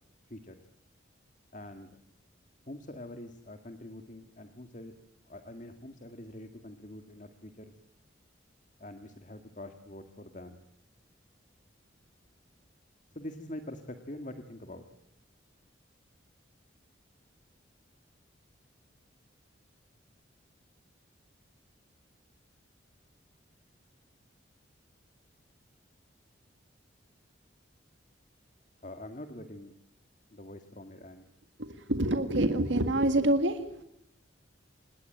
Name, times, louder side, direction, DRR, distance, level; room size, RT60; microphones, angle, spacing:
voice 1, 0.3-0.6 1.5-2.0 2.7-4.9 5.2-7.8 8.8-10.6 13.1-14.9 28.8-29.7 30.3-31.2, left 1 dB, 40° left, 7 dB, 1.9 m, -45 dB
voice 2, 31.6-33.6, right 1 dB, 75° right, 8 dB, 1.9 m, -26 dB
27.0 x 21.5 x 9.2 m, 0.76 s
head